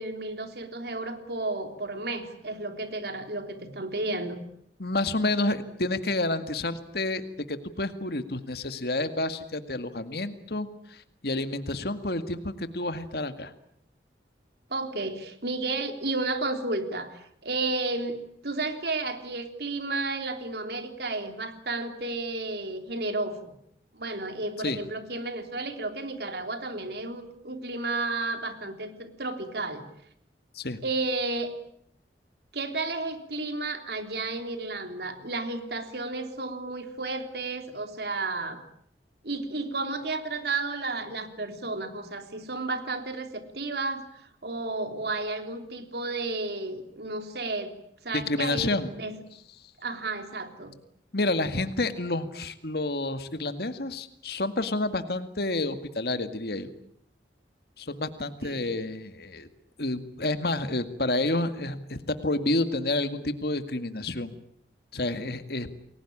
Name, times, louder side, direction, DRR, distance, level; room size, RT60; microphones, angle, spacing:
voice 1, 0.0-4.4 14.7-18.2 18.4-23.5 23.9-29.8 30.8-31.6 32.5-38.6 39.2-44.1 44.4-47.7 48.0-49.2 49.8-50.7 58.4-58.8, right 3 dB, 65° right, 7 dB, 3.4 m, -32 dB
voice 2, 4.8-7.2 7.5-13.5 24.6-24.8 30.5-30.8 48.1-48.9 51.1-56.7 57.8-59.5 59.8-64.3 64.9-65.7, left 2 dB, 60° left, 10 dB, 2.0 m, -29 dB
30.0 x 21.5 x 8.8 m, 0.69 s
head